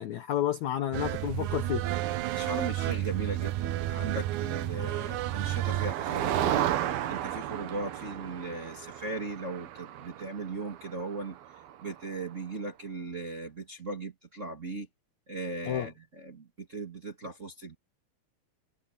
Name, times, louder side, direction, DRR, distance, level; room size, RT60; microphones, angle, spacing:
voice 1, 0.0-1.8 15.7-15.9, left 11 dB, 70° left, 1.7 m, -30 dB
sound 1, 0.9-5.9, right 14 dB, 90° right, 1.6 m, -31 dB
voice 2, 2.3-6.7 7.1-11.4 11.8-14.9 15.3-17.8, right 3 dB, 30° right, 1.6 m, -38 dB
Motor vehicle (road), 4.4-12.2, right 11 dB, 70° right, 3.1 m, -34 dB
omnidirectional pair, 4.6 m